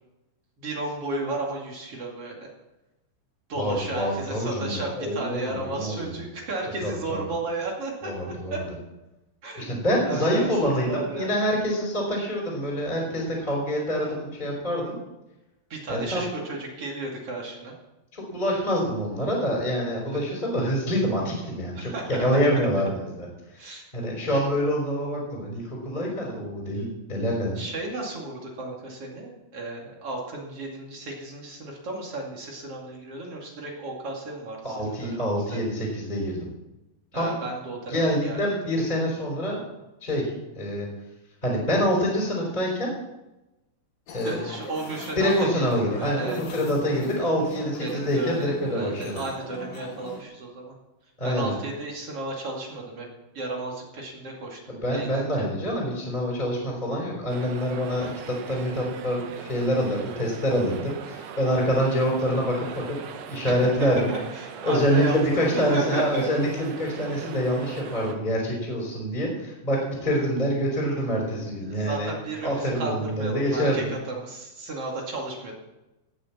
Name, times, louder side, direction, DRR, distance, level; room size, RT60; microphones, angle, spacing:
voice 1, 0.6-2.5 3.5-8.1 8.5-8.6 9.4-9.7 10.0-11.3 14.0-14.3 15.7-17.7 21.7-22.4 23.6-23.8 27.6-35.6 37.1-38.6 44.2-46.4 47.8-50.7 51.2-53.1 53.3-55.5 63.4-66.2 71.6-75.5, right 2 dB, 40° right, -1 dB, 2.7 m, -34 dB
voice 2, 3.6-6.2 6.8-7.2 8.0-8.6 9.5-15.0 15.9-16.2 18.1-21.9 22.2-23.3 23.9-27.6 34.6-36.5 37.1-37.3 37.9-39.6 40.0-40.9 41.4-42.9 44.1-44.4 45.2-49.2 51.2-51.5 54.7-63.0 63.3-64.0 64.6-72.1 72.4-73.9, equal, 10° left, -3 dB, 3.9 m, -26 dB
sound 1, 44.1-50.2, left 4 dB, 60° left, 2.6 m, -42 dB
sound 2, 57.3-68.2, right 7 dB, 75° right, 2.0 m, -41 dB
18.0 x 7.0 x 7.4 m, 0.99 s
omnidirectional pair, 5.3 m